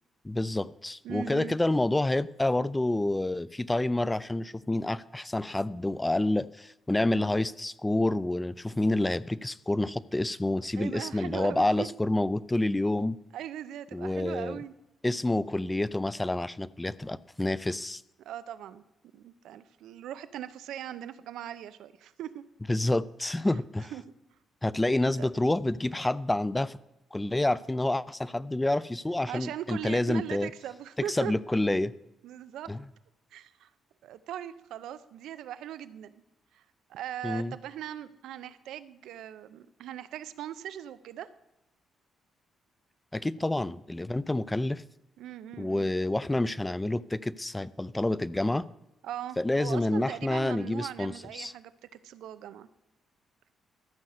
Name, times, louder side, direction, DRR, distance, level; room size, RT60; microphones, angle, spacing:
voice 1, 0.2-13.2 13.9-14.6 15.0-18.0 22.7-23.9 24.6-26.8 27.1-30.5 31.1-31.9 32.7-32.8 37.2-37.5 43.1-44.8 45.6-48.6 49.4-51.5, left 1 dB, 10° left, 18 dB, 0.5 m, -28 dB
voice 2, 1.0-1.6 10.8-11.9 13.3-14.7 18.2-18.8 19.1-22.4 23.9-24.0 25.2-25.3 29.3-31.3 32.2-32.7 33.3-33.7 34.0-36.2 36.5-36.6 36.9-41.3 43.4-43.5 45.2-45.9 49.0-52.7, right 11 dB, 90° right, 13 dB, 0.7 m, -40 dB
14.0 x 5.6 x 6.5 m, 0.94 s
cardioid pair, 105°, 0 cm